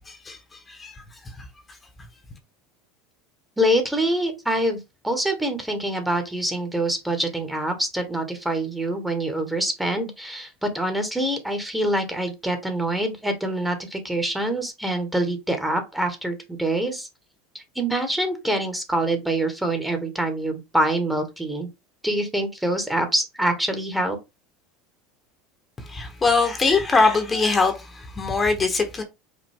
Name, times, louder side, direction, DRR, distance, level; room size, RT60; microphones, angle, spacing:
voice 1, 0.1-0.4 0.7-0.9 25.9-29.0, left 4 dB, 20° left, 1.1 m, -22 dB
voice 2, 3.6-4.8 5.0-17.1 17.5-21.7 22.0-24.2, right 1 dB, 5° right, 1.3 m, -25 dB
5.1 x 2.6 x 3.5 m
hypercardioid pair, 85°, 0 cm